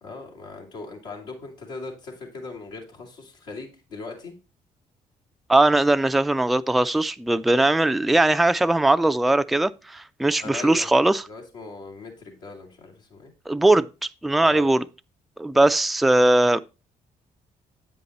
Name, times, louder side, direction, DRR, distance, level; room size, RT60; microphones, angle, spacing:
voice 1, 0.0-4.3 10.4-10.9 11.3-13.3 14.4-14.7, left 3 dB, 85° left, 2.1 m, -39 dB
voice 2, 5.5-11.2 13.5-13.9 14.2-14.8 15.4-16.6, right 2 dB, ahead, 0.3 m, -20 dB
8.2 x 5.3 x 4.1 m
hypercardioid pair, 45°, 19 cm